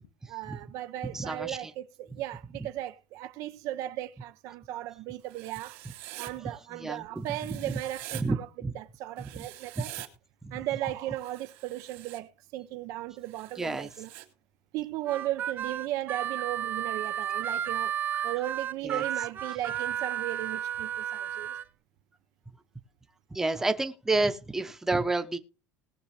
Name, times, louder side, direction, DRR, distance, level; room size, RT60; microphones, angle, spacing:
voice 1, 0.3-5.8 6.2-8.5 8.7-10.0 10.5-14.1 14.7-18.0 18.2-21.5, right 14 dB, 60° right, 0.8 m, -36 dB
voice 2, 1.1-1.6 6.7-7.2 8.1-8.4 8.6-8.7 9.8-9.9 10.4-10.5 13.6-13.9 18.8-19.0 23.3-25.4, right 2 dB, 5° right, 0.9 m, -29 dB
Writing, 5.3-6.3 7.3-8.2 9.2-10.1 11.2-12.2 13.2-14.3, right 17 dB, 80° right, 2.4 m, -45 dB
Harmonica, 15.1-21.6, right 10 dB, 30° right, 0.5 m, -32 dB
19.5 x 6.6 x 3.3 m
cardioid pair, 160°, 6 cm